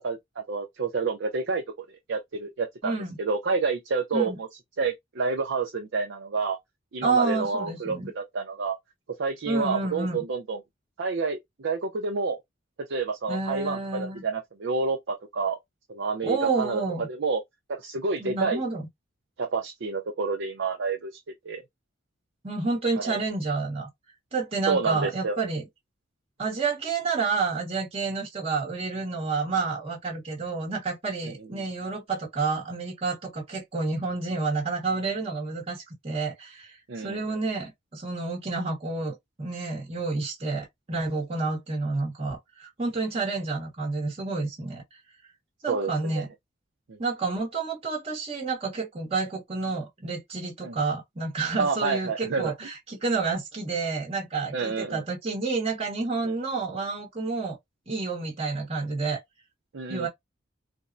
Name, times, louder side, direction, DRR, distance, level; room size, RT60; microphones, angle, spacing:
voice 1, 0.0-1.6 2.1-4.5 4.8-6.6 6.9-8.8 9.2-10.6 11.0-12.4 12.9-15.6 15.9-16.8 17.1-17.4 17.7-18.6 19.4-21.1 21.4-21.6 23.0-23.2 24.7-25.4 31.2-31.6 36.9-37.4 45.7-46.2 46.9-47.0 50.6-50.8 51.6-52.5 54.5-55.0 56.2-56.3 59.7-60.1, right 4 dB, 65° right, 0.5 m, -29 dB
voice 2, 2.8-3.2 4.1-4.4 7.0-8.1 9.5-10.2 13.3-14.2 16.2-17.1 18.2-18.8 22.4-23.9 24.3-25.6 26.4-45.0 45.6-46.3 47.0-57.6 57.9-59.2 59.9-60.1, right 4 dB, 30° right, 1.0 m, -29 dB
3.4 x 2.1 x 2.5 m
head